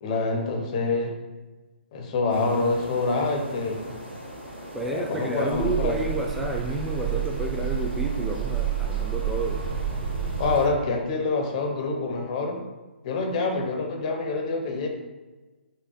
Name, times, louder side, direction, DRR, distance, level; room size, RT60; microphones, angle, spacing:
voice 1, 0.0-1.1 1.9-3.8 4.8-6.0 10.4-12.6 13.0-14.9, left 3 dB, 35° left, 2 dB, 0.9 m, -26 dB
sound 1, 2.3-10.7, right 1 dB, 75° right, 1.3 m, -40 dB
voice 2, 4.7-9.6, right 1 dB, ahead, 0 dB, 0.3 m, -30 dB
sound 2, 5.5-10.6, right 9 dB, 40° right, 1.2 m, -29 dB
4.8 x 2.8 x 3.7 m, 1.2 s
figure-of-eight pair, 135°, 6 cm